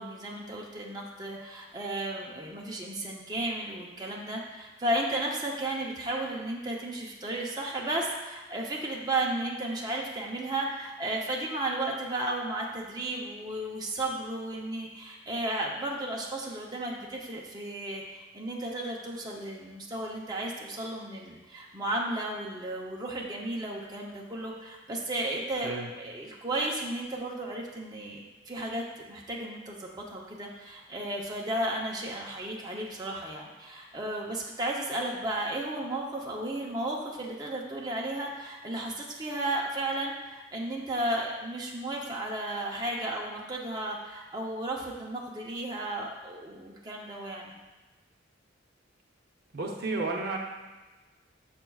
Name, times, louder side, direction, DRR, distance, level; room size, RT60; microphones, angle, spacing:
voice 1, 0.0-47.6, right 1 dB, 20° right, -3 dB, 0.6 m, -34 dB
voice 2, 49.5-50.4, right 3 dB, 55° right, 1 dB, 0.7 m, -32 dB
6.8 x 5.9 x 2.3 m, 1.2 s
head